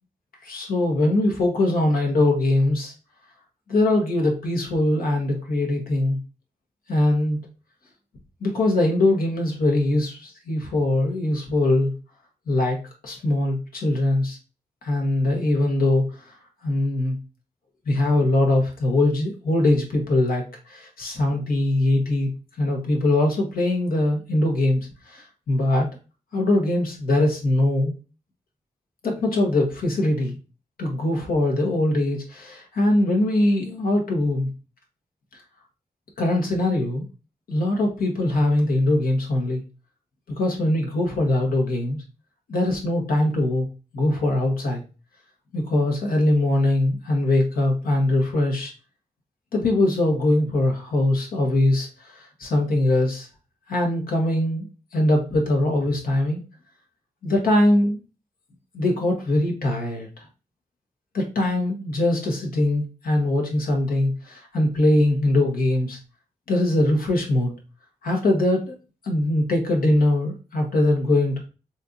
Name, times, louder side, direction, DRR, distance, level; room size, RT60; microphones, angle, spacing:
voice 1, 0.4-2.9 3.7-6.2 6.9-7.4 8.4-11.9 12.5-12.8 13.0-14.4 14.8-16.1 16.6-17.2 17.9-22.3 22.6-25.9 26.3-27.9 29.0-30.3 30.8-34.5 36.2-37.0 37.5-39.6 40.4-42.0 42.5-43.7 43.9-44.8 45.5-48.7 49.5-53.3 53.7-54.7 54.9-56.4 57.2-58.0 58.7-60.1 61.1-66.0 66.5-67.5 68.0-68.7 69.0-71.4, left 1 dB, 90° left, 1 dB, 1.1 m, -22 dB
4.2 x 2.7 x 2.5 m, 0.32 s
cardioid pair, 50°, 15 cm